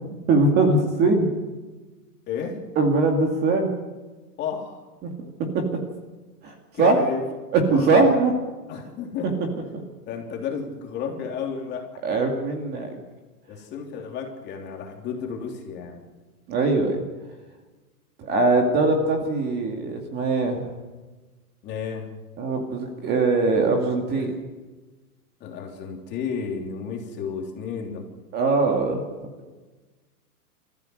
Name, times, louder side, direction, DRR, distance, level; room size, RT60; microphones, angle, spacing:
voice 1, 0.3-1.3 2.8-3.7 5.0-5.1 5.5-5.6 6.4-7.0 7.5-8.3 12.0-12.9 16.5-17.0 18.2-20.6 22.4-24.3 28.3-29.0, right 3 dB, 20° right, 3 dB, 2.4 m, -21 dB
voice 2, 2.3-2.6 4.4-4.8 6.7-7.2 7.7-8.0 8.7-9.5 10.1-11.9 13.5-16.0 21.6-22.1 24.2-24.3 25.4-28.1, left 6 dB, 20° left, 1 dB, 3.3 m, -32 dB
27.0 x 14.5 x 7.9 m, 1.3 s
hypercardioid pair, 160°, 47 cm